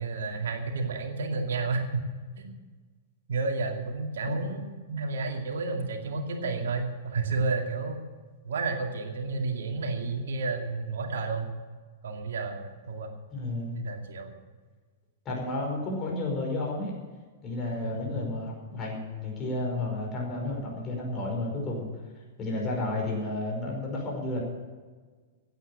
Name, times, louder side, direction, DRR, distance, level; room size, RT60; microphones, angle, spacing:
voice 1, 0.0-2.1 2.4-2.5 3.3-8.0 8.4-11.5 12.0-13.1 13.7-14.3 17.8-18.2, right 3 dB, 60° right, 4 dB, 2.3 m, -31 dB
voice 2, 13.3-13.8 15.3-16.9 17.4-21.9 22.4-24.4, left 2 dB, 25° left, -1 dB, 5.4 m, -32 dB
16.5 x 9.4 x 7.1 m, 1.4 s
figure-of-eight pair, 105°, 0 cm